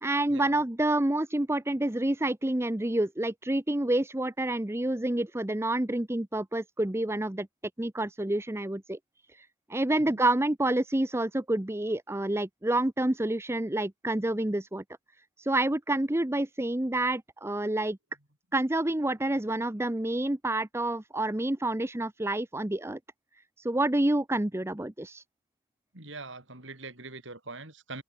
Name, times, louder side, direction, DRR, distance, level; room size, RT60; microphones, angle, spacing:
voice 1, 0.0-7.5 7.8-9.0 9.4-14.8 15.4-18.0 18.5-23.0 23.6-25.2, right 1 dB, 10° right, 0.7 m, -28 dB
voice 2, 25.9-28.0, right 3 dB, 60° right, 4.8 m, -43 dB
head